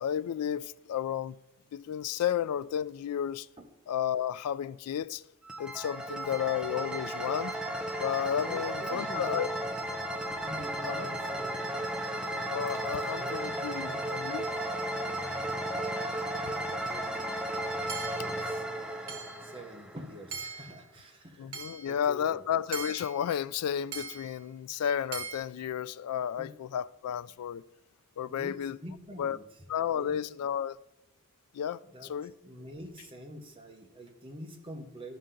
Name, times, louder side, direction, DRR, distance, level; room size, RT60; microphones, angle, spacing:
voice 1, 0.0-1.3 1.7-3.5 3.9-5.2 5.6-7.6 8.0-9.5 10.8-11.1 12.5-14.4 21.4-27.6 28.2-28.8 29.2-29.4 29.7-30.8 31.5-32.3, left 9 dB, 85° left, 0.3 m, -32 dB
sound 1, 5.5-20.3, right 1 dB, 5° right, 0.5 m, -34 dB
voice 2, 8.5-9.5 10.4-11.7 12.8-14.0 15.4-16.0 16.5-17.3 17.7-18.6 19.1-21.4 21.8-22.4 26.4-26.5 28.2-29.4 29.9-30.2 31.9-32.1 32.4-35.2, equal, 25° right, 1.0 m, -46 dB
Hammer / Chink clink, 17.9-18.3 19.1-19.5 20.3-20.7 21.5-21.9 22.7-23.2 23.9-24.3 25.1-25.4, right 5 dB, 65° right, 1.2 m, -40 dB
13.0 x 5.6 x 3.8 m
head